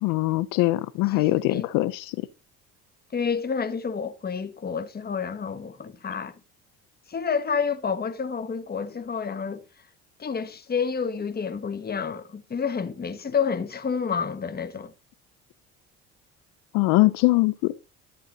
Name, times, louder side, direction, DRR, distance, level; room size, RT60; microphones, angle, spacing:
voice 1, 0.0-2.3 16.7-17.7, left 19 dB, 80° left, 0.8 m, -22 dB
voice 2, 3.1-6.4 7.1-9.6 10.2-14.9, left 6 dB, 30° left, 1.6 m, -29 dB
13.5 x 9.2 x 4.1 m
supercardioid pair, 90°, 31 cm